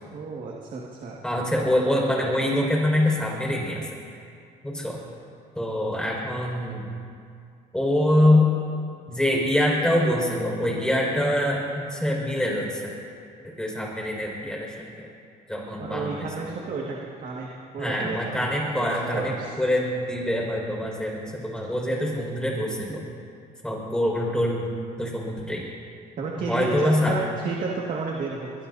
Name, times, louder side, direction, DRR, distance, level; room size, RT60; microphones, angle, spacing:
voice 1, 0.1-1.2 15.8-19.5 26.2-28.5, right 4 dB, 55° right, -2 dB, 2.0 m, -32 dB
voice 2, 1.2-3.9 4.6-5.0 5.6-6.9 7.7-8.6 9.1-12.9 13.6-15.1 15.5-16.4 17.8-23.0 23.6-24.7 25.0-25.6 26.4-27.2, left 1 dB, 5° left, -2 dB, 5.2 m, -25 dB
23.0 x 22.5 x 2.8 m, 2.4 s
cardioid pair, 110°, 17 cm